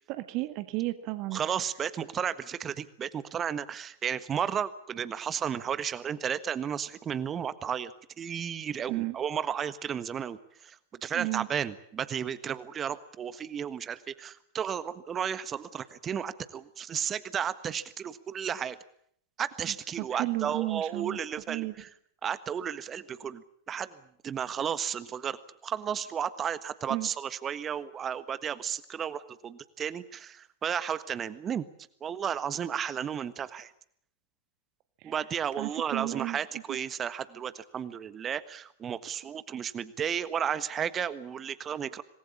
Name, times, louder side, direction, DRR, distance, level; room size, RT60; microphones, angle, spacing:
voice 1, 0.1-1.4 8.9-9.2 11.1-11.5 20.0-21.2 21.5-21.7 26.9-27.1 35.0-35.1 35.6-36.4, right 19 dB, 40° right, 11 dB, 1.6 m, -33 dB
voice 2, 1.3-7.9 8.2-10.4 10.6-10.8 11.0-18.8 19.4-21.9 22.2-24.0 24.2-25.4 25.6-31.6 32.0-33.7 35.0-42.0, right 8 dB, 25° right, 15 dB, 1.5 m, -33 dB
26.5 x 20.0 x 8.6 m, 0.66 s
figure-of-eight pair, 90°, 0 cm